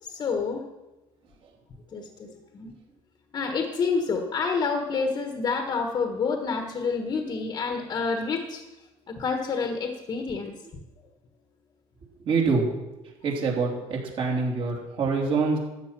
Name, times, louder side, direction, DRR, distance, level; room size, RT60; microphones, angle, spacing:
voice 1, 0.0-0.7 1.9-2.7 3.3-8.6 9.1-10.5, left 4 dB, 35° left, 4 dB, 1.4 m, -28 dB
voice 2, 12.2-12.7 13.2-15.6, right 4 dB, 45° right, -1 dB, 3.2 m, -25 dB
13.5 x 8.8 x 6.0 m, 1.0 s
cardioid pair, 140°, 12 cm